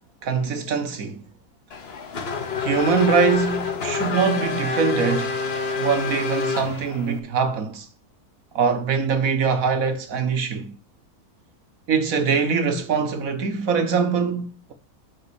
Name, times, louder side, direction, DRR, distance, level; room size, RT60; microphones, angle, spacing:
voice 1, 0.2-1.2 2.6-5.4 5.8-7.9 8.5-10.7 11.9-14.7, right 5 dB, 65° right, 1.6 m, -23 dB
Race car auto racing / Accelerating revving vroom, 1.7-7.2, left 5 dB, 45° left, 1.3 m, -27 dB
9.5 x 3.9 x 6.9 m
omnidirectional pair, 1.6 m